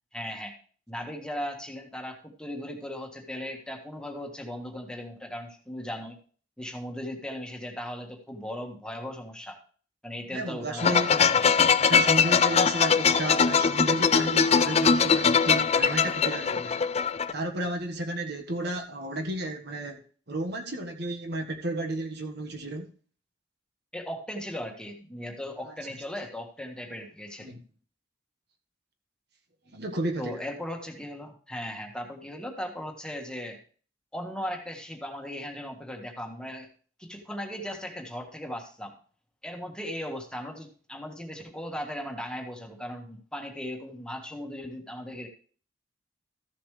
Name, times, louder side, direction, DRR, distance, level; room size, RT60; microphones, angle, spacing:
voice 1, 0.1-0.5 0.9-6.2 6.6-9.6 10.0-11.1 23.9-27.5 30.2-33.6 34.1-36.7 37.0-39.0 39.4-45.3, equal, 5° left, 1.6 m, -37 dB
voice 2, 10.3-16.9 17.3-20.0 20.3-22.9 25.6-25.7 27.4-27.6 29.7-30.4, right 1 dB, 60° right, 1.5 m, -33 dB
sound 1, 10.8-17.3, left 6 dB, 35° left, 0.4 m, -22 dB
14.0 x 7.2 x 3.3 m
head